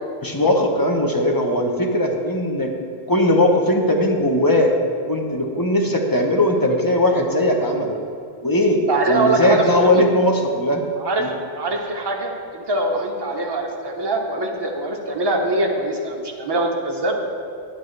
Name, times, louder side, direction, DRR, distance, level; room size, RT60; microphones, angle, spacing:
voice 1, 0.2-2.7 3.1-4.7 5.1-7.9 8.4-8.8 9.1-10.8 11.2-11.3, left 1 dB, 20° left, 1 dB, 0.7 m, -19 dB
voice 2, 8.9-10.0 11.0-11.3 11.6-17.2, right 2 dB, 25° right, 0 dB, 0.9 m, -23 dB
11.0 x 9.1 x 3.2 m, 2.4 s
omnidirectional pair, 1.1 m